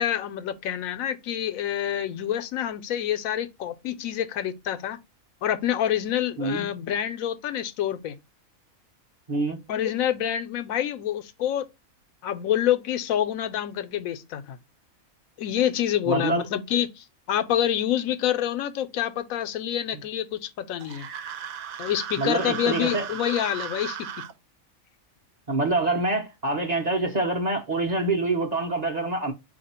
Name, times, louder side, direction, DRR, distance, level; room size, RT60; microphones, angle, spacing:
voice 1, 0.0-5.0 5.4-8.2 9.7-11.7 12.2-14.6 15.4-21.1 21.8-24.1, left 10 dB, 80° left, 1.0 m, -27 dB
voice 2, 16.1-16.4 22.2-23.1 25.5-29.3, right 2 dB, 40° right, 0.7 m, -26 dB
sound 1, 20.8-24.3, right 8 dB, 80° right, 1.0 m, -36 dB
4.4 x 2.7 x 4.1 m
omnidirectional pair, 1.4 m